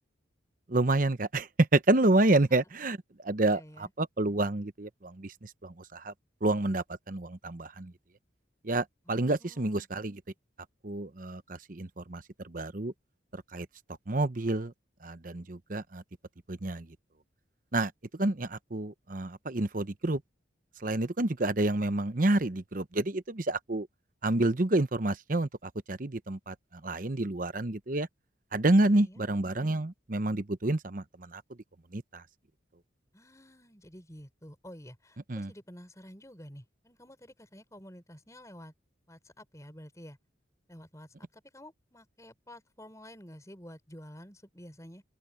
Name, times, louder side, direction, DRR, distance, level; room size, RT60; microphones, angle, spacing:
voice 1, 0.7-3.0 3.2-3.6 4.0-6.1 6.4-7.9 8.6-10.2 10.8-12.9 13.3-13.7 14.1-14.7 15.0-16.0 16.5-16.9 17.7-20.2 20.8-23.9 24.2-28.1 28.5-31.4 31.9-32.2 35.3-35.5, right 2 dB, 45° right, 0.9 m, -29 dB
voice 2, 3.4-3.9 9.1-9.9 28.9-29.2 33.1-38.7 39.1-40.2 40.7-45.0, equal, 15° left, 5.4 m, -50 dB
open air
head